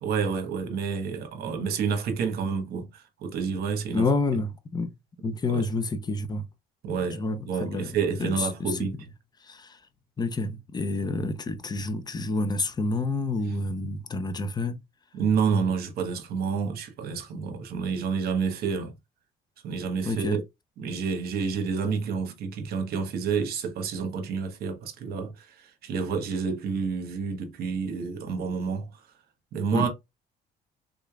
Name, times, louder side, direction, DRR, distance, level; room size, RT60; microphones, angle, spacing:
voice 1, 0.0-4.1 5.5-5.7 6.8-7.2 7.5-8.9 15.1-18.9 19.6-20.4 20.8-28.9 29.5-29.9, right 5 dB, 65° right, 1.1 m, -29 dB
voice 2, 3.9-6.5 7.2-8.9 9.4-9.8 10.2-14.8 20.1-20.4 29.7-29.9, left 3 dB, 25° left, 0.6 m, -29 dB
3.6 x 3.3 x 2.3 m
cardioid pair, 110°, 17 cm